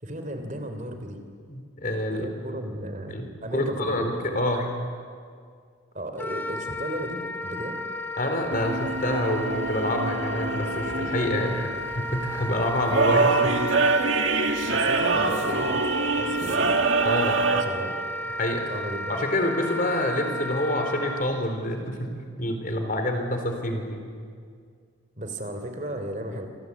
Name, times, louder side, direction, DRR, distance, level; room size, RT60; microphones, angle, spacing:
voice 1, 0.0-1.2 2.1-4.1 5.9-7.8 11.4-11.9 14.0-16.8 17.5-17.9 18.7-19.2 25.2-26.5, right 1 dB, 35° right, 7 dB, 3.1 m, -35 dB
voice 2, 1.5-2.3 3.1-4.7 8.2-11.7 12.0-13.6 14.2-14.4 17.0-17.4 18.4-18.6 19.1-22.1 22.4-24.0, left 1 dB, 40° left, 5 dB, 3.9 m, -27 dB
Wind instrument woodwind instrument, 6.2-21.3, left 1 dB, 10° left, 1.5 m, -33 dB
sound 1, 8.5-17.6, right 3 dB, 65° right, 2.1 m, -25 dB
28.0 x 25.0 x 8.4 m, 2.1 s
head